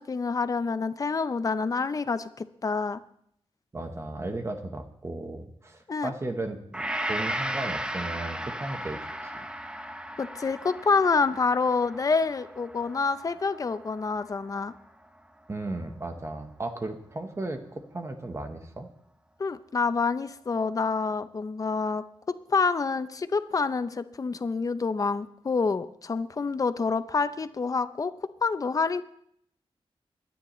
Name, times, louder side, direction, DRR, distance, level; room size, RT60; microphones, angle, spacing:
voice 1, 0.0-3.0 5.9-6.1 10.2-14.7 19.4-22.0 22.5-28.1 28.4-29.0, left 4 dB, 35° left, 12 dB, 0.6 m, -27 dB
voice 2, 3.7-9.4 15.5-18.9, right 2 dB, 25° right, 6 dB, 1.1 m, -35 dB
Gong, 6.7-15.1 15.5-15.6, right 1 dB, 10° right, 0.7 m, -36 dB
23.0 x 10.0 x 3.1 m, 0.69 s
wide cardioid pair, 155°, 10 cm